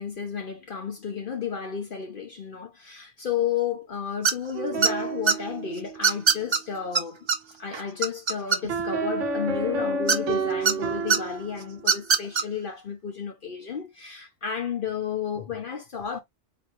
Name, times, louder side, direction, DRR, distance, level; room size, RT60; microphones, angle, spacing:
voice 1, 0.0-7.3 7.6-16.2, left 7 dB, 50° left, 0.9 m, -32 dB
sound 1, 4.2-4.5 4.8-5.3 6.0-6.6 6.9-7.0 7.3-7.4 7.7-8.9 10.1-10.7 11.1-11.2 11.8-12.4, right 5 dB, 45° right, 0.3 m, -21 dB
sound 2, 4.5-6.2 8.7-11.9, right 3 dB, 90° right, 1.3 m, -30 dB
4.4 x 3.1 x 2.5 m
omnidirectional pair, 1.2 m